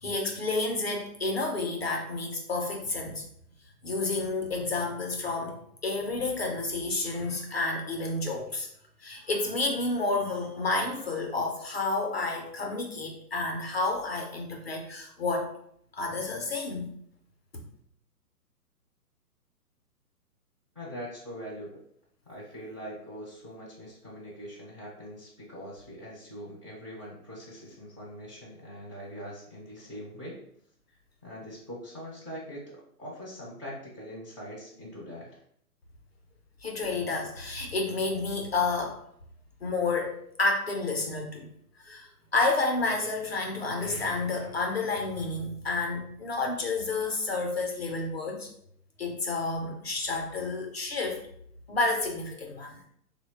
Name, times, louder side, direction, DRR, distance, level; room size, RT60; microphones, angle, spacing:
voice 1, 0.0-3.2 3.8-8.7 9.0-15.5 15.9-16.9 17.5-17.7 36.6-39.0 39.6-41.5 41.8-48.5 49.0-51.2 51.7-52.8, left 3 dB, 45° left, 1 dB, 0.4 m, -30 dB
voice 2, 20.7-21.8 22.3-30.4 31.2-35.4, equal, 20° right, -7 dB, 0.4 m, -42 dB
3.0 x 2.0 x 3.1 m, 0.68 s
figure-of-eight pair, 130°, 46 cm